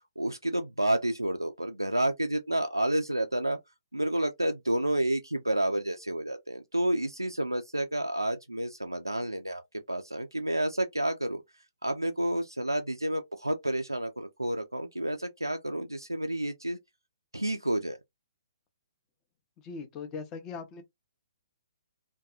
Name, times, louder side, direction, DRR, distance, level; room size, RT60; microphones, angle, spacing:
voice 1, 0.2-3.6 3.9-9.6 9.9-11.4 11.8-16.8 17.3-18.0, right 1 dB, 90° right, 0.3 m, -30 dB
voice 2, 19.6-20.8, left 5 dB, 20° left, 0.5 m, -40 dB
2.6 x 2.2 x 2.3 m
figure-of-eight pair, 125°, 2 cm